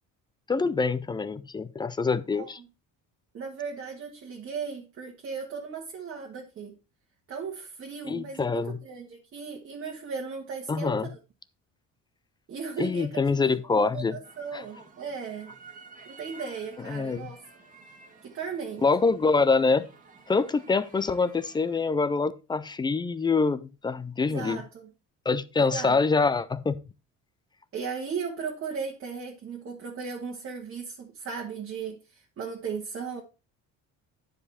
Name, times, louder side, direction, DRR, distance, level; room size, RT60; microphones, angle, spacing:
voice 1, 0.5-2.6 8.1-8.8 10.7-11.1 12.8-14.2 14.5-14.6 16.9-17.3 18.8-19.9 20.3-24.6 25.3-26.8, left 4 dB, 15° left, 0.3 m, -25 dB
voice 2, 3.3-6.7 7.3-11.1 12.5-15.5 16.0-17.4 18.2-18.8 24.2-24.9 25.6-26.0 27.7-33.2, right 5 dB, 40° right, 1.5 m, -36 dB
sound 1, 14.2-21.9, right 4 dB, 25° right, 1.8 m, -52 dB
10.0 x 5.0 x 4.1 m
cardioid pair, 145°, 33 cm